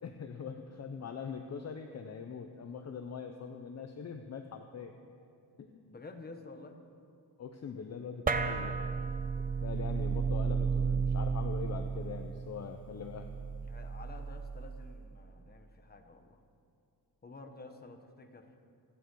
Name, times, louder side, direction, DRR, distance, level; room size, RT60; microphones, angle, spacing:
voice 1, 0.0-4.9 5.6-5.9 7.4-9.2 9.6-13.3, left 6 dB, 40° left, 5 dB, 0.7 m, -42 dB
voice 2, 5.8-6.8 13.6-16.4 17.2-18.5, left 3 dB, 25° left, 5 dB, 1.1 m, -50 dB
sound 1, 8.3-15.0, right 5 dB, 20° right, 0.5 m, -33 dB
27.0 x 9.1 x 4.7 m, 2.4 s
wide cardioid pair, 180°, 40 cm